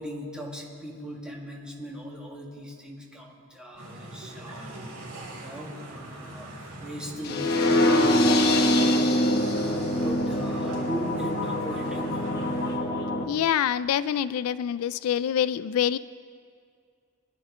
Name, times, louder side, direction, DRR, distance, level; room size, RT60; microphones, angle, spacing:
voice 1, 0.0-4.8 5.4-8.6 9.5-12.3, equal, 5° right, -3 dB, 2.0 m, -39 dB
sound 1, 3.8-12.8, right 1 dB, 85° right, 3.8 m, -41 dB
sound 2, 7.2-13.2, left 1 dB, 50° left, 1.2 m, -24 dB
voice 2, 13.3-16.0, left 9 dB, 80° left, 16 dB, 0.3 m, -25 dB
22.5 x 11.0 x 3.7 m, 2.3 s
head